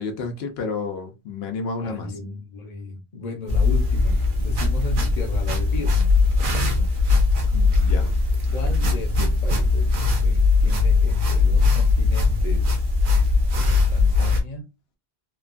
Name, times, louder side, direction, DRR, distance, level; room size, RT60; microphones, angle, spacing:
voice 1, 0.0-2.1 7.5-8.1, left 4 dB, 80° left, 0.9 m, -30 dB
voice 2, 1.8-7.0 8.5-12.8 13.9-14.7, left 2 dB, 45° left, 0.7 m, -35 dB
sound 1, 3.5-14.4, left 3 dB, 60° right, 0.8 m, -20 dB
3.0 x 2.2 x 2.5 m
omnidirectional pair, 1.0 m